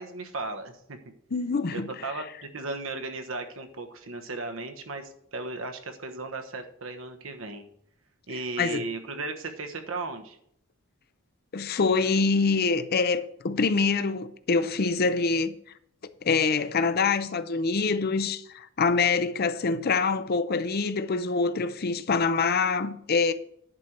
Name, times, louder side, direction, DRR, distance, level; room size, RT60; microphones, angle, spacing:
voice 1, 0.0-1.1 1.7-7.6 8.3-10.4, right 3 dB, 70° right, 1.2 m, -36 dB
voice 2, 1.3-1.9 8.6-8.8 11.5-15.5 16.2-23.3, left 4 dB, 50° left, 0.6 m, -25 dB
10.5 x 4.5 x 6.4 m
head